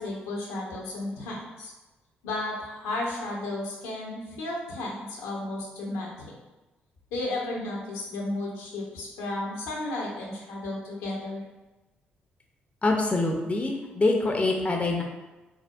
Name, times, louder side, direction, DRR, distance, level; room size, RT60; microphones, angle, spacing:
voice 1, 0.0-1.7 2.2-6.3 7.1-11.4, left 2 dB, 75° left, -2 dB, 0.6 m, -33 dB
voice 2, 12.8-15.0, left 2 dB, 25° left, 1 dB, 0.5 m, -25 dB
4.3 x 2.0 x 2.4 m, 1.1 s
figure-of-eight pair, 40°, 5 cm